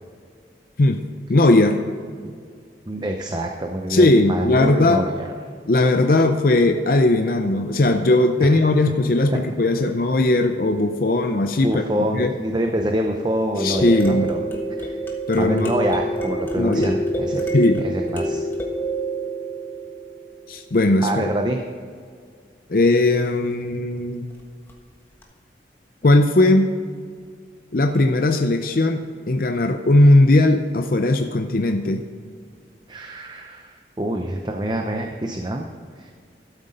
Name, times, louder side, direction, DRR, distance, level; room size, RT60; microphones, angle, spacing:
voice 1, 1.3-1.8 3.9-5.1 5.7-12.3 13.6-14.3 15.3-15.7 16.6-16.9 17.5-17.8 20.5-21.2 22.7-24.3 26.0-26.7 27.7-32.0, left 2 dB, 50° left, 6 dB, 0.6 m, -18 dB
voice 2, 2.9-5.3 8.4-8.6 9.3-9.4 11.6-14.4 14.8-15.0 15.4-17.5 17.8-18.5 21.0-21.6 32.9-35.7 36.0-36.1, right 1 dB, 25° right, 3 dB, 0.6 m, -26 dB
sound 1, 13.5-20.4 24.7-24.8 25.2-25.3, right 1 dB, 10° left, 1.3 m, -27 dB
12.5 x 8.1 x 5.3 m, 2.1 s
head